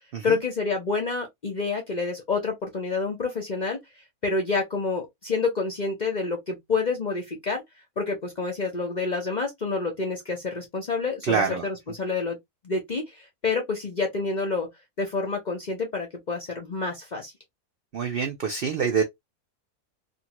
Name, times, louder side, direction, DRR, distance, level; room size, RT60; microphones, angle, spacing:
voice 1, 0.2-3.8 4.2-7.6 8.0-12.4 12.6-14.7 15.0-17.3, left 4 dB, 45° left, 0.5 m, -28 dB
voice 2, 11.2-11.6 17.9-19.0, right 6 dB, 70° right, 0.5 m, -25 dB
2.6 x 2.5 x 2.9 m
omnidirectional pair, 1.6 m